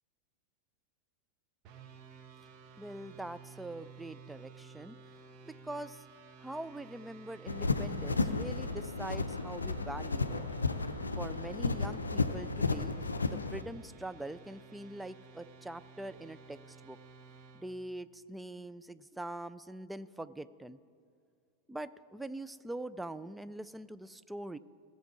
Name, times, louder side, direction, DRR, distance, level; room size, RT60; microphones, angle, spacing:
sound 1, 1.6-17.7, right 5 dB, 40° right, 1.0 m, -55 dB
voice 1, 2.8-5.0 5.4-6.0 6.4-10.4 11.2-12.9 13.3-17.0 17.5-20.8 21.7-24.6, right 1 dB, 5° right, 14 dB, 0.3 m, -43 dB
sound 2, 7.5-13.6, left 3 dB, 75° left, 0.5 m, -33 dB
16.5 x 6.9 x 4.7 m, 2.3 s
figure-of-eight pair, 90°, 0 cm